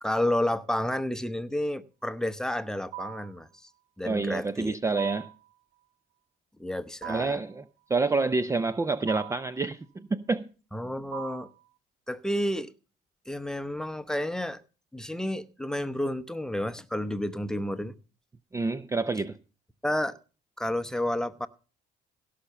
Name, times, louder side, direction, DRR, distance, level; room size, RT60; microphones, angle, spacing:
voice 1, 0.0-3.7 4.0-4.8 6.6-7.4 10.7-11.5 12.1-12.7 13.3-14.6 14.9-17.9 19.8-20.2 20.6-21.5, left 1 dB, 5° left, 0.8 m, -30 dB
sound 1, 2.9-3.4 5.0-5.5 7.0-7.5 9.1-9.5 11.1-11.6, right 21 dB, 80° right, 1.5 m, -41 dB
voice 2, 4.0-5.3 7.1-7.6 7.9-10.4 18.5-19.4, right 3 dB, 15° right, 0.5 m, -28 dB
17.0 x 5.7 x 6.7 m
cardioid pair, 110°, 17 cm